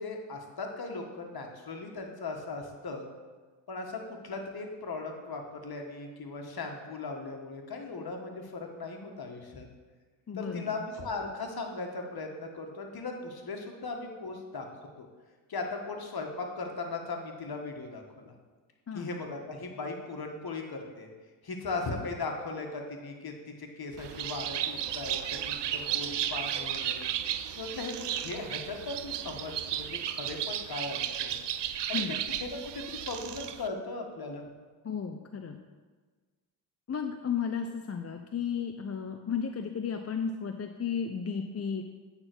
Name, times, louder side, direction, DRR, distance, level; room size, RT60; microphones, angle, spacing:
voice 1, 0.0-3.1 3.7-9.7 10.4-14.7 15.0-15.1 15.5-18.3 18.9-21.1 21.4-27.1 27.6-31.4 31.7-32.0 32.4-34.4, left 3 dB, 45° left, 2 dB, 1.6 m, -38 dB
voice 2, 10.3-10.8 18.9-19.1 31.9-32.2 34.8-35.6 36.9-41.8, left 6 dB, 30° left, 5 dB, 0.6 m, -34 dB
Bird, 24.0-33.7, right 10 dB, 55° right, 0.6 m, -34 dB
8.7 x 4.0 x 6.1 m, 1.4 s
supercardioid pair, 55°, 49 cm